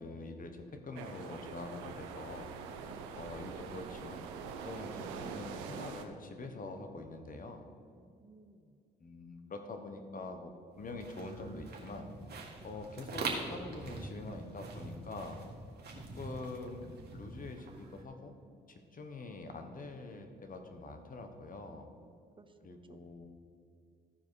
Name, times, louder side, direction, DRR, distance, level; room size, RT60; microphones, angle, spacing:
voice 1, 0.0-2.5 3.1-4.3 4.6-7.7 9.0-10.5 10.8-12.1 12.6-15.4 16.0-16.9 17.1-18.4 18.7-21.9 22.6-23.4, left 2 dB, 45° left, 6 dB, 1.3 m, -45 dB
sound 1, 1.0-6.1, right 6 dB, 85° right, 0.7 m, -44 dB
voice 2, 2.9-3.2 7.9-8.8 12.6-12.7 22.0-22.5 22.9-23.3, right 3 dB, 25° right, 8 dB, 0.8 m, -60 dB
sound 2, 10.8-18.0, right 3 dB, 55° right, 1.8 m, -44 dB
14.0 x 4.8 x 4.8 m, 2.3 s
hypercardioid pair, 50°, 20 cm